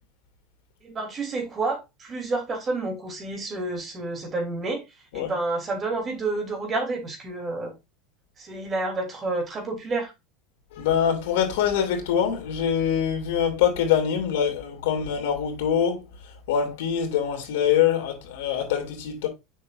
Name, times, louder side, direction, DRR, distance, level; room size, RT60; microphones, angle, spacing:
voice 1, 0.8-4.8 5.1-7.8 8.4-10.1, right 3 dB, 25° right, 3.0 m, -29 dB
voice 2, 10.8-16.0 16.5-19.3, left 8 dB, 80° left, 2.7 m, -24 dB
7.5 x 6.0 x 2.6 m
supercardioid pair, 125°, 0 cm